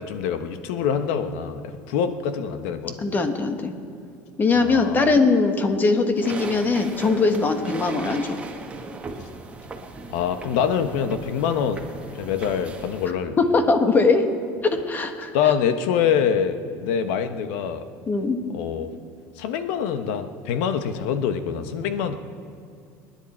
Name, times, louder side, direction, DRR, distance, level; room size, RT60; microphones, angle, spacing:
voice 1, 0.0-3.0 4.5-5.1 10.1-11.8 12.2-13.4 15.3-17.8 18.5-18.9 19.4-22.1, left 7 dB, 80° left, 9 dB, 1.1 m, -25 dB
voice 2, 3.0-3.7 4.4-8.4 13.5-14.3 14.6-15.3 18.1-18.4, left 3 dB, 30° left, 7 dB, 1.5 m, -21 dB
sound 1, 6.2-13.1, right 3 dB, 20° right, 1.4 m, -38 dB
27.5 x 10.5 x 4.4 m, 2.3 s
supercardioid pair, 120°, 7 cm